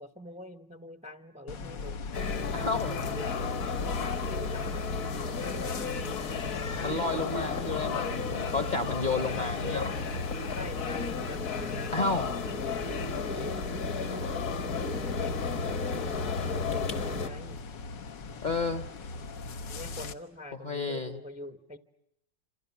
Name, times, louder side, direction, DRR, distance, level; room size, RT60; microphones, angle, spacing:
voice 1, 0.0-2.1 3.6-6.0 7.2-7.9 10.5-12.0 13.4-14.8 15.1-17.6 19.7-21.8, left 1 dB, 5° right, 10 dB, 0.6 m, -45 dB
sound 1, 1.5-20.1, left 2 dB, 80° left, 1.9 m, -39 dB
sound 2, 2.1-17.3, left 5 dB, 50° left, 1.5 m, -33 dB
voice 2, 2.5-3.0 6.8-10.0 11.9-12.3 18.4-18.8 20.6-21.2, left 3 dB, 30° left, 10 dB, 0.9 m, -31 dB
27.5 x 27.5 x 7.2 m, 0.81 s
omnidirectional pair, 1.9 m